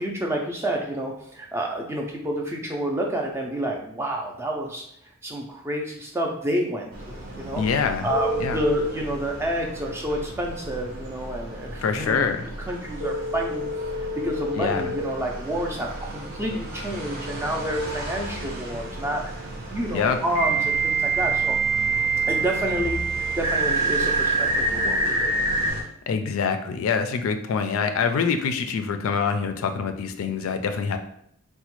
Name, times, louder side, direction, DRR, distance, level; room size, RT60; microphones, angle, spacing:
voice 1, 0.0-4.8 5.2-7.6 8.0-12.3 12.7-13.7 14.0-19.4 19.7-21.6 22.3-25.5, equal, 10° right, 1 dB, 0.4 m, -29 dB
sound 1, 6.9-25.8, right 1 dB, 45° right, 0.7 m, -36 dB
voice 2, 7.6-8.1 8.4-8.6 11.8-12.4 14.6-14.9 19.9-20.2 26.1-31.0, left 6 dB, 70° left, 8 dB, 0.3 m, -25 dB
sound 2, 8.1-9.0 13.0-15.0 17.6-17.7 20.3-25.7, right 3 dB, 75° right, 1.1 m, -25 dB
4.0 x 2.1 x 3.0 m, 0.68 s
head